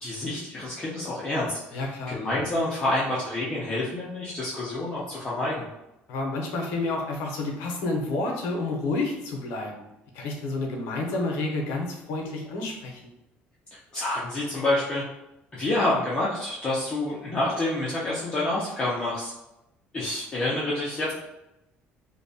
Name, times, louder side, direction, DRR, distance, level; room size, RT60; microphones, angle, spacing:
voice 1, 0.0-5.7 13.7-15.0 15.5-19.3 19.9-21.1, left 1 dB, 20° left, -7 dB, 0.4 m, -28 dB
voice 2, 1.7-2.2 6.1-9.8 10.1-13.0, left 2 dB, 90° left, 1 dB, 0.6 m, -30 dB
2.6 x 2.1 x 2.6 m, 0.89 s
cardioid pair, 170°, 4 cm